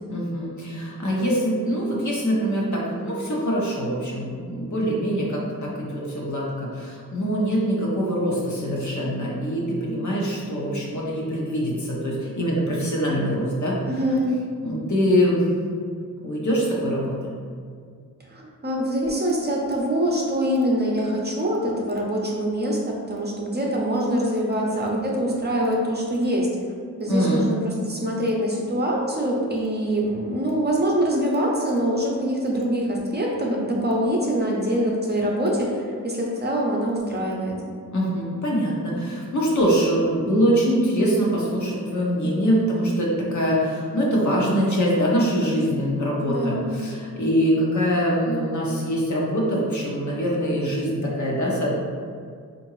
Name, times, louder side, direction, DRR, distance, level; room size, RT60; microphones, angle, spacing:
voice 1, 0.1-13.8 14.6-15.5 16.2-17.3 27.1-27.5 37.9-51.7, equal, 60° left, -4 dB, 0.9 m, -23 dB
voice 2, 13.9-14.4 18.2-26.5 27.0-37.6 46.3-46.8, equal, 30° right, -2 dB, 0.7 m, -24 dB
3.7 x 2.6 x 3.1 m, 2.1 s
cardioid pair, 60°, 34 cm